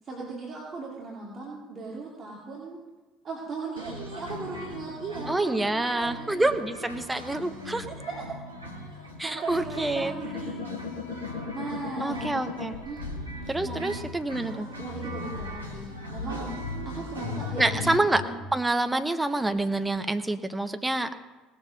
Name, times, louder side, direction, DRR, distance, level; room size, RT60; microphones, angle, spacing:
voice 1, 0.0-2.8 3.2-6.6 7.4-8.2 9.1-10.5 11.5-12.3 12.8-13.4 13.6-13.9 14.4-16.5 16.8-18.3, right 3 dB, 35° right, -4 dB, 2.7 m, -38 dB
sound 1, 3.8-18.0, equal, 90° right, 1.5 m, -40 dB
voice 2, 5.3-7.9 9.2-10.1 12.0-12.8 13.5-14.7 17.6-18.2 18.5-21.1, right 2 dB, 10° right, 9 dB, 1.1 m, -27 dB
sound 2, 10.2-14.0 14.8-18.4, left 5 dB, 70° left, 2.0 m, -37 dB
19.0 x 7.3 x 5.2 m, 1.2 s
figure-of-eight pair, 60°, 0 cm